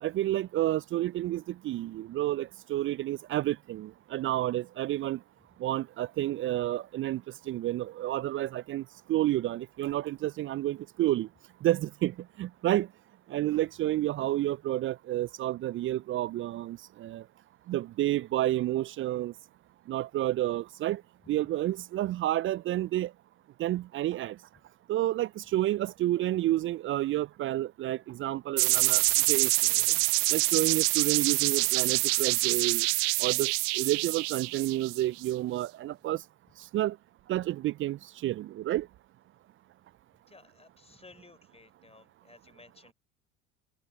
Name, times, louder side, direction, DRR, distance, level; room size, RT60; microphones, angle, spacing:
voice 1, 0.0-5.2 5.6-7.2 7.5-8.8 9.1-11.3 11.6-12.9 13.3-17.2 17.7-19.3 19.9-21.0 21.3-23.1 23.6-24.4 24.9-29.0 29.3-29.5 30.3-32.9 33.2-36.2 36.7-37.0 37.3-38.9, right 14 dB, 30° right, 0.5 m, -30 dB
sound 1, 28.6-35.3, right 38 dB, 55° right, 0.8 m, -26 dB
voice 2, 40.3-42.9, left 3 dB, 15° left, 3.9 m, -56 dB
figure-of-eight pair, 70°, 43 cm